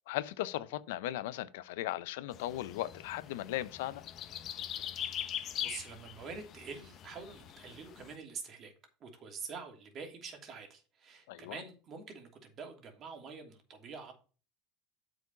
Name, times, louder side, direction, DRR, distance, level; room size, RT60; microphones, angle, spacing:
voice 1, 0.1-4.0 11.3-11.6, left 15 dB, 75° left, 0.6 m, -37 dB
sound 1, 2.3-8.2, left 10 dB, 45° left, 0.9 m, -42 dB
voice 2, 5.2-8.7 9.0-14.1, right 5 dB, 40° right, 2.8 m, -46 dB
8.0 x 5.0 x 5.6 m
supercardioid pair, 100°, 0 cm